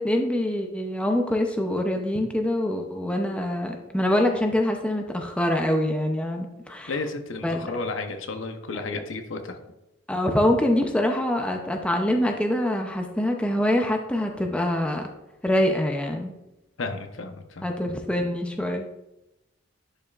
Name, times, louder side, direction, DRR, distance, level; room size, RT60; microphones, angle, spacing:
voice 1, 0.0-7.0 7.4-7.7 8.7-9.0 10.1-15.0 15.4-16.3 17.6-18.9, left 1 dB, 5° left, 3 dB, 0.5 m, -25 dB
voice 2, 6.9-9.6 16.8-17.7, left 3 dB, 70° left, 6 dB, 0.8 m, -32 dB
10.5 x 5.5 x 2.4 m, 0.93 s
head